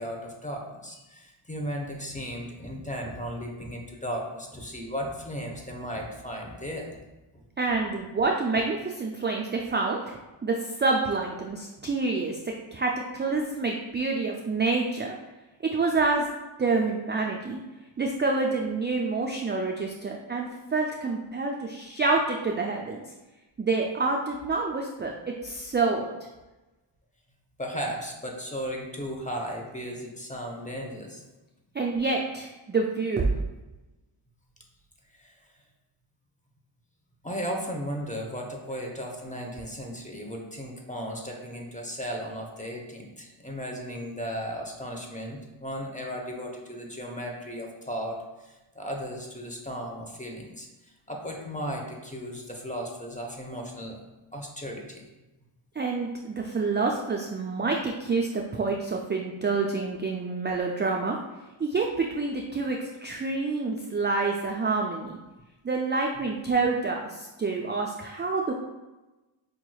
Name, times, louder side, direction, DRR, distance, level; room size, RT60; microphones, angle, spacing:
voice 1, 0.0-7.0 27.6-31.2 35.2-35.3 37.2-54.0 54.3-55.0 66.2-66.3, equal, 15° left, 1 dB, 0.8 m, -36 dB
voice 2, 7.6-15.2 15.7-16.3 16.6-17.6 18.0-23.0 23.6-26.1 31.7-33.4 55.8-61.2 61.6-65.2 65.6-68.5, right 3 dB, 25° right, 0 dB, 0.4 m, -27 dB
4.9 x 2.9 x 2.3 m, 1.1 s
cardioid pair, 40°, 50 cm